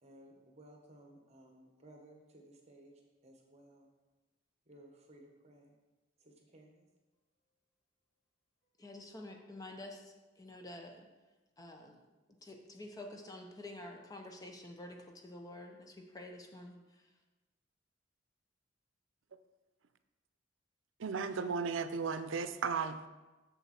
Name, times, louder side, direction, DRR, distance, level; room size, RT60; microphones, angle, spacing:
voice 1, 0.0-3.9 4.7-5.8 6.2-6.8, right 1 dB, 35° right, 1 dB, 1.3 m, -58 dB
voice 2, 8.8-11.1 11.6-12.0 12.4-16.8, left 1 dB, 20° left, 3 dB, 0.7 m, -49 dB
voice 3, 21.0-23.1, right 5 dB, 90° right, 11 dB, 0.5 m, -35 dB
7.3 x 7.0 x 4.3 m, 1.2 s
head